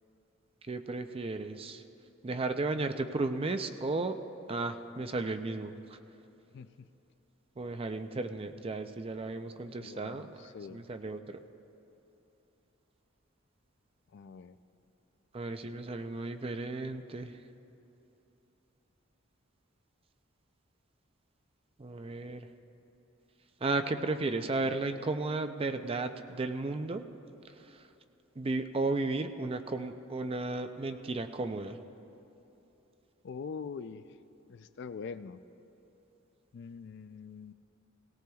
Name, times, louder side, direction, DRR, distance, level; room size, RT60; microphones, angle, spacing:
voice 1, 0.7-1.8 2.2-4.2 4.5-6.0 7.6-10.4 10.7-11.4 15.3-17.4 21.8-22.5 23.6-27.0 27.5-27.9 28.4-31.8, right 3 dB, 30° right, 8 dB, 0.5 m, -34 dB
voice 2, 6.5-6.9 9.8-10.8 14.1-14.6 33.2-34.0 34.5-35.4 36.5-37.5, left 5 dB, 60° left, 13 dB, 0.4 m, -43 dB
18.5 x 18.0 x 2.3 m, 3.0 s
head